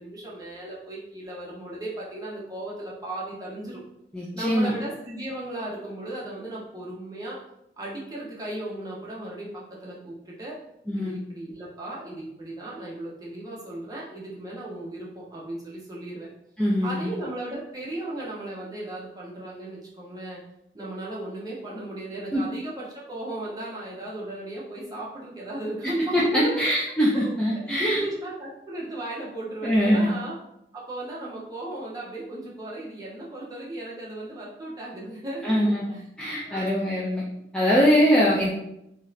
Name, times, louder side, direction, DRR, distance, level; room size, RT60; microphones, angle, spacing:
voice 1, 0.0-3.8 4.3-7.4 7.8-10.6 11.0-16.3 16.8-20.4 20.7-26.6 27.1-30.4 30.7-36.0 36.4-37.0, right 1 dB, 20° right, -5 dB, 0.7 m, -36 dB
voice 2, 4.1-4.7 10.9-11.2 16.6-17.0 22.3-22.4 26.1-28.0 29.6-30.1 35.4-35.9 36.2-37.2 37.5-38.5, equal, 5° left, -7 dB, 0.3 m, -22 dB
2.6 x 2.4 x 3.1 m, 0.81 s
head